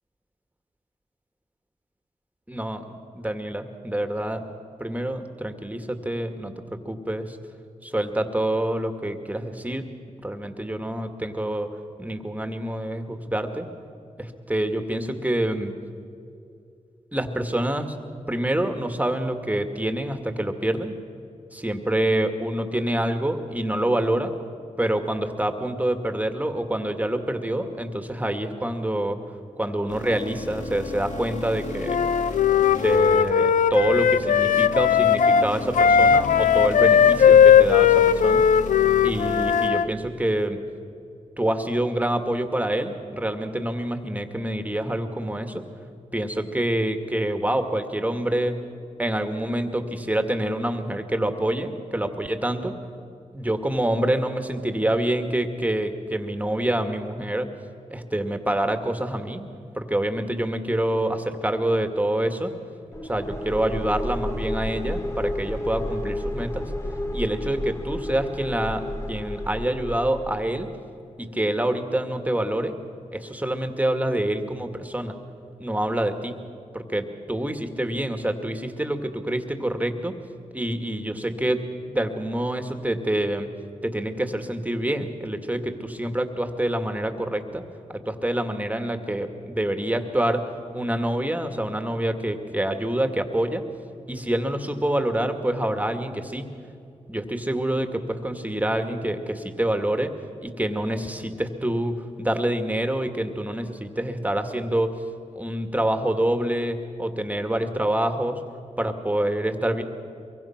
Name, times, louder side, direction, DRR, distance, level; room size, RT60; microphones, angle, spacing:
voice 1, 2.5-4.4 4.8-6.5 6.9-7.4 7.8-9.9 10.2-11.7 12.0-13.7 14.2-15.7 17.1-18.0 18.3-20.9 21.5-24.3 24.8-29.2 29.6-32.0 32.6-38.5 39.0-40.6 41.4-45.6 46.1-48.6 49.0-52.7 53.3-57.5 57.9-59.4 59.7-62.5 63.0-66.7 67.1-70.7 71.2-72.8 73.1-75.2 75.6-76.4 76.7-80.1 80.5-81.6 81.9-83.5 83.8-87.6 87.9-90.4 90.7-93.6 94.1-96.5 97.1-100.1 100.4-104.9 105.3-108.4 108.8-109.8, right 1 dB, 10° right, 7 dB, 2.0 m, -26 dB
sound 1, 29.9-39.7, left 3 dB, 70° left, 2.4 m, -35 dB
Wind instrument woodwind instrument, 31.9-39.9, left 8 dB, 90° left, 0.5 m, -18 dB
sound 2, 62.9-70.7, left 1 dB, 20° left, 1.4 m, -31 dB
23.5 x 23.0 x 5.9 m, 2.5 s
cardioid pair, 60°, 13 cm